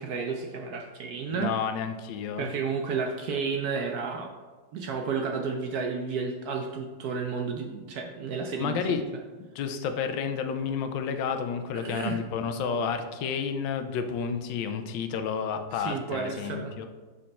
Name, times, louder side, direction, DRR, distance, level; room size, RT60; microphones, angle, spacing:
voice 1, 0.0-1.5 2.4-4.3 4.7-9.0 11.7-12.2 15.7-16.7, right 5 dB, 70° right, 2 dB, 1.0 m, -32 dB
voice 2, 1.3-2.5 8.6-9.0 9.4-16.9, left 6 dB, 85° left, 7 dB, 1.3 m, -31 dB
6.4 x 4.4 x 4.1 m, 1.4 s
omnidirectional pair, 2.0 m